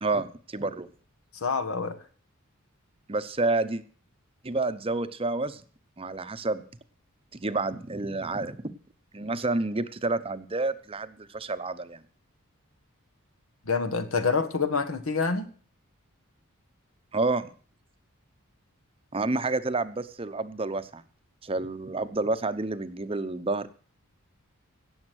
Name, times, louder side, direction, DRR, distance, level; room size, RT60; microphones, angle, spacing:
voice 1, 0.0-0.9 3.1-3.8 4.4-5.6 6.0-6.6 7.3-8.6 9.1-12.0 17.1-17.5 19.1-21.0 21.4-23.7, right 3 dB, 25° right, 12 dB, 0.8 m, -29 dB
voice 2, 1.3-2.0 13.6-15.4, left 4 dB, 75° left, 8 dB, 1.6 m, -27 dB
17.5 x 7.3 x 6.3 m, 0.43 s
head